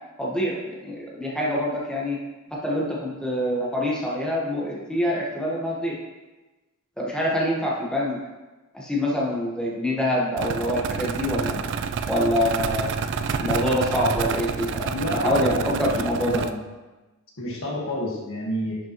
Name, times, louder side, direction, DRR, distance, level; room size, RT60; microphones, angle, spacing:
voice 1, 0.2-2.2 2.5-6.0 7.0-8.2 8.7-11.6 12.1-12.9 13.4-16.4, equal, 5° left, -5 dB, 1.2 m, -25 dB
sound 1, 10.4-16.5, right 5 dB, 55° right, 0.4 m, -28 dB
voice 2, 14.9-15.8 16.2-16.6 17.4-18.8, left 1 dB, 60° left, -2 dB, 1.6 m, -29 dB
11.0 x 5.4 x 3.0 m, 1.2 s
head